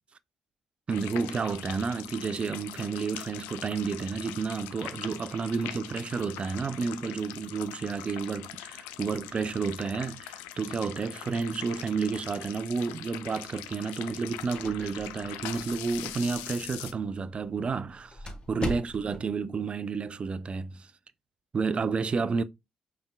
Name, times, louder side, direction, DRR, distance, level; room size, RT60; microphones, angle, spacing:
sound 1, 0.9-16.9, left 13 dB, 75° left, 0.4 m, -42 dB
voice 1, 0.9-20.9 21.5-22.4, right 5 dB, 40° right, 0.4 m, -31 dB
sound 2, 14.1-19.3, left 1 dB, 35° left, 1.3 m, -41 dB
5.3 x 3.4 x 2.2 m
hypercardioid pair, 45°, 3 cm